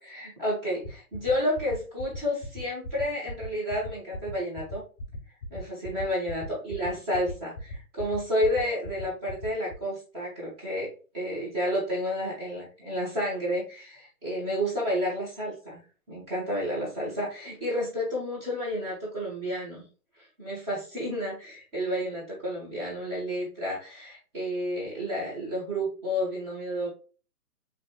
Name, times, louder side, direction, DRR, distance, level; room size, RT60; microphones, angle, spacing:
voice 1, 0.0-4.8 5.5-10.9 11.1-15.8 16.1-19.9 20.4-26.9, equal, 15° right, -5 dB, 1.4 m, -31 dB
sound 1, 0.8-9.7, left 1 dB, 20° left, 0.7 m, -37 dB
5.1 x 3.2 x 2.3 m, 0.36 s
hypercardioid pair, 165°, 44 cm